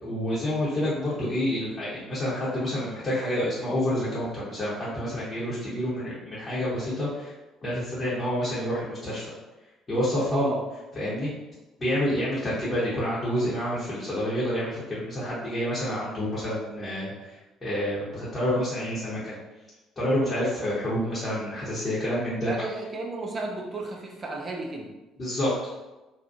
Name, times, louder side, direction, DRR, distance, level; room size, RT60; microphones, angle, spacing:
voice 1, 0.0-7.3 7.6-9.3 9.9-10.5 11.0-11.3 11.8-17.3 17.6-19.4 20.0-22.5 25.2-25.5, equal, 30° left, -10 dB, 0.9 m, -28 dB
voice 2, 10.3-10.6 22.4-24.9, right 3 dB, 35° right, 0 dB, 0.5 m, -33 dB
2.7 x 2.4 x 2.5 m, 1.1 s
figure-of-eight pair, 50°, 0 cm